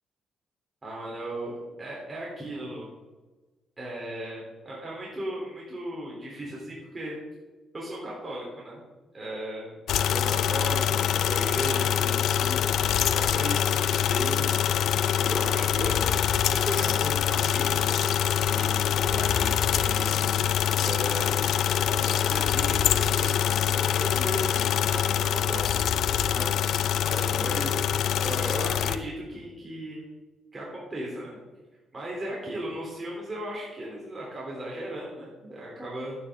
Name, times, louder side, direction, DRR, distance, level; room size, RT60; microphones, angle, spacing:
voice 1, 0.8-1.5 1.8-2.9 3.8-7.2 7.7-8.8 9.1-9.8 10.0-12.7 13.1-14.6 15.2-17.9 18.4-20.1 20.8-21.5 21.9-26.5 27.0-27.8 28.2-30.0 30.5-31.4 31.9-36.2, right 1 dB, 25° right, -4 dB, 3.3 m, -36 dB
sound 1, 9.9-29.0, left 9 dB, 75° left, 0.6 m, -25 dB
12.0 x 9.6 x 3.7 m, 1.2 s
cardioid pair, 90°, 0 cm